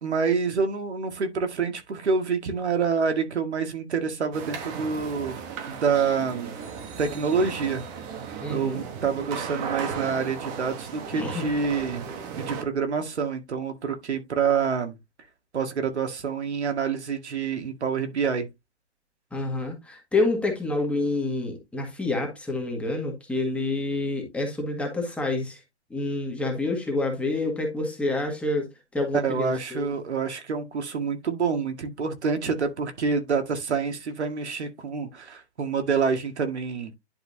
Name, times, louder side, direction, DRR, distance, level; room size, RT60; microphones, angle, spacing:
voice 1, 0.0-5.4 5.7-6.5 7.0-7.8 8.5-12.1 12.3-15.0 15.5-18.5 29.1-36.9, right 5 dB, 75° right, 2.0 m, -27 dB
sound 1, 4.3-12.6, right 6 dB, 20° right, 1.2 m, -36 dB
voice 2, 8.4-8.8 11.1-11.5 19.3-25.6 25.9-28.7 28.9-29.8, left 2 dB, 5° left, 1.7 m, -28 dB
11.0 x 4.7 x 2.7 m
hypercardioid pair, 145°, 34 cm